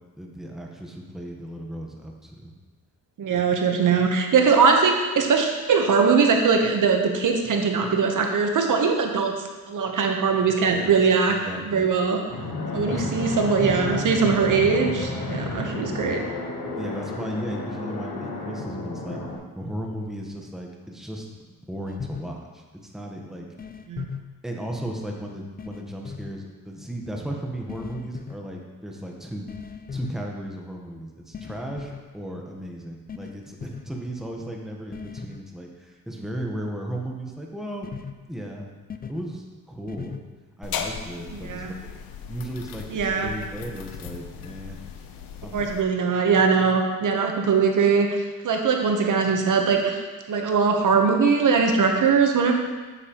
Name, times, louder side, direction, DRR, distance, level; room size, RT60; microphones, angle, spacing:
voice 1, 0.2-2.5 3.3-3.5 10.6-10.9 11.3-11.9 12.9-13.1 16.8-19.2 19.6-21.3 21.7-22.6 22.9-23.5 24.4-29.5 29.9-37.9 38.3-38.7 39.1-40.2 40.6-41.8 42.3-44.8 45.4-45.7, right 1 dB, ahead, 0 dB, 1.0 m, -35 dB
voice 2, 3.2-9.3 9.7-11.4 11.7-12.2 12.7-16.2 23.9-24.0 41.4-41.7 42.9-43.3 45.5-50.0 50.3-52.5, right 5 dB, 60° right, 3 dB, 0.9 m, -21 dB
Fixed-wing aircraft airplane, 12.3-19.4, left 2 dB, 70° left, 1.3 m, -31 dB
sound 1, 21.9-22.2 23.6-24.2 25.6-26.3 27.7-28.4 29.5-30.1 31.3-32.0 33.1-33.3 33.6-33.8 34.9-35.4 37.8-38.1 38.9-39.2 39.9-40.2, left 6 dB, 25° left, 0.4 m, -37 dB
sound 2, 40.6-45.8, left 7 dB, 90° left, 0.7 m, -37 dB
8.3 x 7.4 x 2.9 m, 1.3 s
cardioid pair, 105°, 35 cm